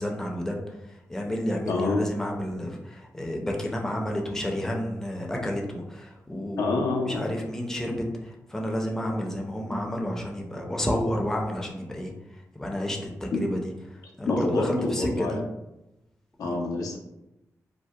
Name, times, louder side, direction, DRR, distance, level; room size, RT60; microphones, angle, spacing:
voice 1, 0.0-12.1 12.5-13.6 13.9-15.4 16.4-16.6, equal, 10° left, 0 dB, 0.4 m, -30 dB
voice 2, 1.7-2.0 6.6-7.3 13.3-13.4 14.3-15.3 16.4-17.0, left 3 dB, 80° left, 0 dB, 0.4 m, -27 dB
2.6 x 2.0 x 2.3 m, 0.92 s
cardioid pair, 80°, 6 cm